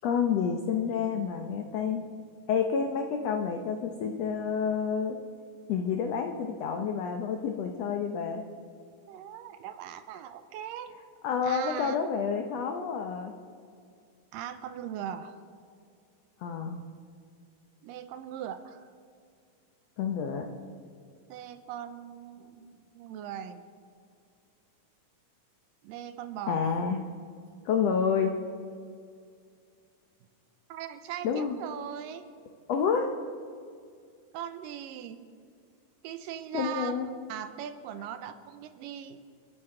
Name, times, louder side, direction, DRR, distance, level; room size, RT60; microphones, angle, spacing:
voice 1, 0.0-2.0 2.5-5.2 5.7-8.4 11.2-13.3 16.4-16.8 20.0-20.5 26.5-27.0 27.6-28.4 31.2-31.6 32.7-33.1 36.5-37.1, left 6 dB, 85° left, 5 dB, 1.4 m, -29 dB
voice 2, 9.1-10.9 11.4-12.0 14.3-15.4 17.8-18.9 21.3-23.7 25.8-26.7 30.7-32.3 34.3-35.3 36.0-37.0 37.3-39.2, right 10 dB, 80° right, 10 dB, 2.3 m, -40 dB
30.0 x 10.5 x 3.8 m, 2.3 s
omnidirectional pair, 4.0 m